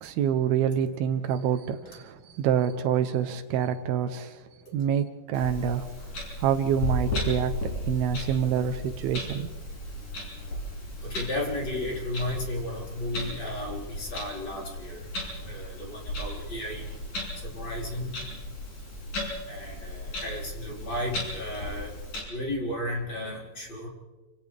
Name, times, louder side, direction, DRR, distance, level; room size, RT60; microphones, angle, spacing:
voice 1, 0.0-5.9 6.4-7.6 7.9-9.5, right 8 dB, 75° right, 2.6 m, -27 dB
Clock, 5.3-22.2, left 1 dB, 50° left, 7.7 m, -35 dB
voice 2, 11.0-15.0 15.4-16.8 17.5-18.1 19.5-21.9 22.3-23.9, left 1 dB, 30° left, 5.1 m, -34 dB
29.5 x 27.0 x 3.4 m
omnidirectional pair, 4.5 m